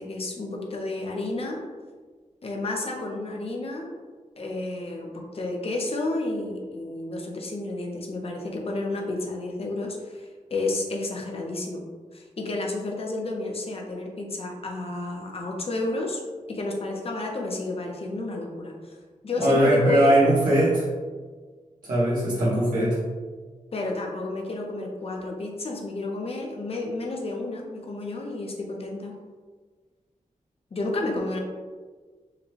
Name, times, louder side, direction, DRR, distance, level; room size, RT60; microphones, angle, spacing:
voice 1, 0.0-1.6 2.4-3.9 4.4-11.8 12.1-16.2 16.5-19.0 19.2-20.2 23.7-29.2 30.7-31.4, left 2 dB, 45° left, 0 dB, 0.6 m, -31 dB
voice 2, 19.4-20.9 21.8-23.0, right 1 dB, 90° right, -10 dB, 1.0 m, -20 dB
4.7 x 2.2 x 3.2 m, 1.5 s
wide cardioid pair, 145°, 14 cm